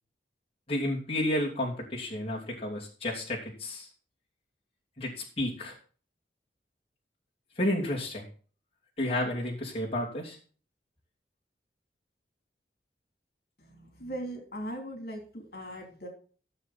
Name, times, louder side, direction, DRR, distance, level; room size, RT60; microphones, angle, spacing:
voice 1, 0.7-3.9 5.0-5.7 7.6-8.2 9.0-10.4, left 1 dB, 35° left, -4 dB, 3.0 m, -31 dB
voice 2, 13.6-16.1, right 1 dB, 60° left, 2 dB, 3.4 m, -39 dB
15.5 x 7.5 x 4.3 m, 0.41 s
head